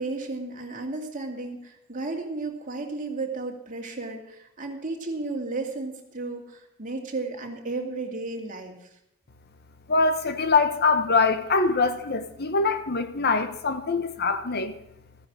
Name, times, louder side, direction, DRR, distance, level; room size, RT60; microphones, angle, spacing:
voice 1, 0.0-8.9, right 3 dB, 40° right, 2.5 m, -33 dB
voice 2, 9.9-14.7, left 4 dB, 50° left, 1.0 m, -23 dB
14.5 x 10.0 x 6.2 m
head